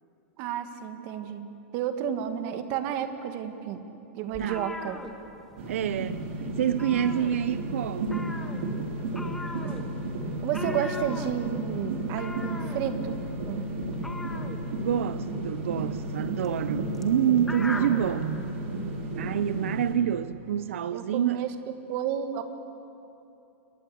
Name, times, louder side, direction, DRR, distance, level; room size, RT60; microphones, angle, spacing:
voice 1, 0.4-3.8 4.2-5.0 10.4-13.1 13.5-13.7 20.9-21.5 21.9-22.4, right 9 dB, 45° right, 2.1 m, -31 dB
sound 1, 4.3-5.8 6.1-6.3 6.6-7.7 8.0-18.1, left 2 dB, 5° left, 1.8 m, -40 dB
sound 2, 5.6-19.9, right 2 dB, 70° right, 5.4 m, -33 dB
voice 2, 5.7-6.3 6.6-8.5 14.8-18.4 19.2-21.5, right 10 dB, 85° right, 0.7 m, -27 dB
28.5 x 22.0 x 8.5 m
supercardioid pair, 150°, 7 cm